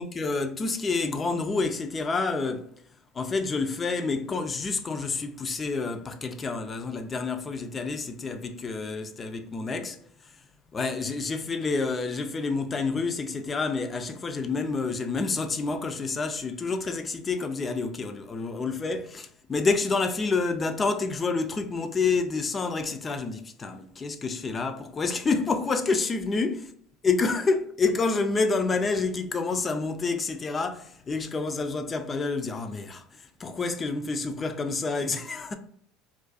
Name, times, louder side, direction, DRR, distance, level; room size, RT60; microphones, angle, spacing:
voice 1, 0.0-2.8 3.1-10.4 10.7-26.7 27.0-35.6, left 4 dB, 30° left, 0.3 m, -28 dB
2.4 x 2.2 x 2.4 m
hypercardioid pair, 85°, 0 cm